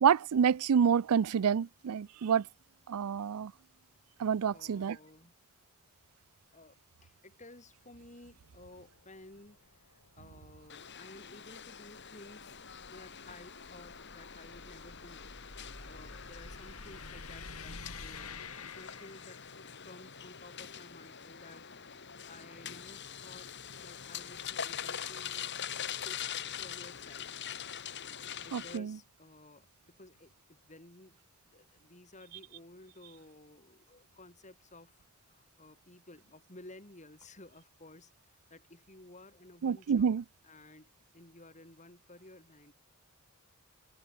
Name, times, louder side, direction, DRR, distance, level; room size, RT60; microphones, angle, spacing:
voice 1, 0.0-2.4 2.9-3.5 4.2-5.0 28.5-28.9 39.6-40.2, right 7 dB, 85° right, 0.4 m, -28 dB
voice 2, 4.5-5.3 6.5-12.6 12.9-15.3 15.8-19.4 19.8-23.5 23.8-25.6 25.9-27.6 28.4-31.2 31.5-42.7, left 2 dB, 35° left, 5.4 m, -55 dB
sound 1, 8.3-19.7, left 4 dB, 80° left, 5.8 m, -50 dB
sound 2, 10.7-28.8, left 8 dB, 55° left, 2.9 m, -44 dB
head